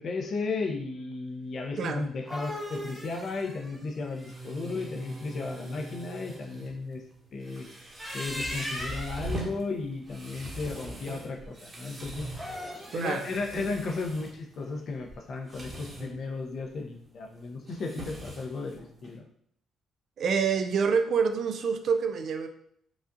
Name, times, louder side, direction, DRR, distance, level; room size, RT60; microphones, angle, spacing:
voice 1, 0.0-7.0 7.3-7.8 8.1-12.3 12.9-19.3, left 3 dB, 55° left, 3 dB, 0.7 m, -34 dB
sound 1, 2.0-5.1 7.8-9.3 12.2-13.1, left 1 dB, 5° right, 1.1 m, -39 dB
sound 2, 3.0-19.2, right 1 dB, 35° right, 1.1 m, -43 dB
voice 2, 12.9-13.3 20.2-22.5, right 6 dB, 65° right, 7 dB, 0.4 m, -27 dB
4.9 x 2.4 x 2.6 m, 0.68 s
cardioid pair, 90°, 0 cm